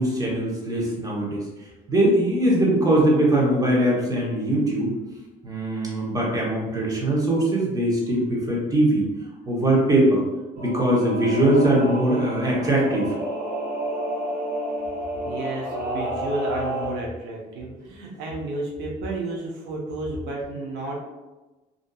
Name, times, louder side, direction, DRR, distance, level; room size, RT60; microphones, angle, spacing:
voice 1, 0.0-1.4 1.9-4.9 5.4-9.1 9.5-10.2 10.6-13.1, right 1 dB, 20° right, -3 dB, 0.8 m, -21 dB
Singing / Musical instrument, 10.6-16.9, equal, 60° right, 1.4 m, -30 dB
voice 2, 15.2-21.1, right 2 dB, 90° right, -2 dB, 0.6 m, -31 dB
2.5 x 2.5 x 2.2 m, 1.1 s
cardioid pair, 110°, 17 cm